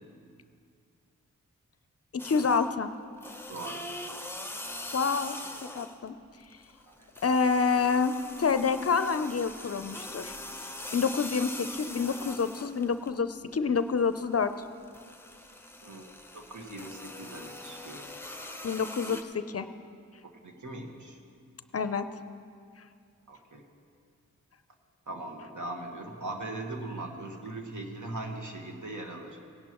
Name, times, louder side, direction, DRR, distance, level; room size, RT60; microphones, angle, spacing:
voice 1, 2.1-2.9 4.9-5.4 5.7-6.2 7.2-10.3 10.9-14.5 18.6-19.7 21.7-22.1, left 5 dB, 45° left, 11 dB, 0.5 m, -27 dB
sound 1, 2.2-2.8 3.2-6.1 6.4-13.2 13.5-19.2, left 1 dB, 5° left, 0.8 m, -42 dB
voice 2, 3.5-3.8 6.9-7.1 15.8-18.1 20.2-21.2 23.3-23.6 25.1-29.4, right 2 dB, 60° right, 2 dB, 1.5 m, -40 dB
18.0 x 11.0 x 3.0 m, 2.4 s
cardioid pair, 45°, 34 cm